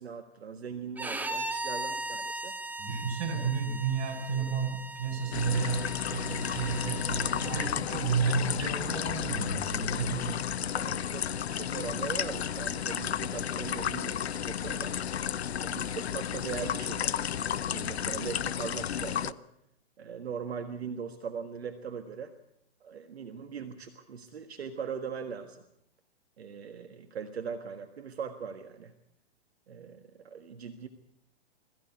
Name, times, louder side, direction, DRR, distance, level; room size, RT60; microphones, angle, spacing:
voice 1, 0.0-2.5 7.9-8.0 10.7-15.0 15.6-17.2 17.5-19.4 20.0-22.3 22.8-25.6 26.4-28.9 29.7-30.9, right 6 dB, 75° right, 7 dB, 1.8 m, -40 dB
Bowed string instrument, 1.0-7.7, right 2 dB, 5° right, 1.3 m, -38 dB
voice 2, 2.8-10.3, right 5 dB, 35° right, 0 dB, 7.7 m, -31 dB
sound 1, 5.3-19.3, left 9 dB, 75° left, 0.8 m, -33 dB
sound 2, 7.2-10.2, left 8 dB, 55° left, 2.3 m, -41 dB
21.0 x 15.0 x 9.6 m, 0.77 s
hypercardioid pair, 120°, 32 cm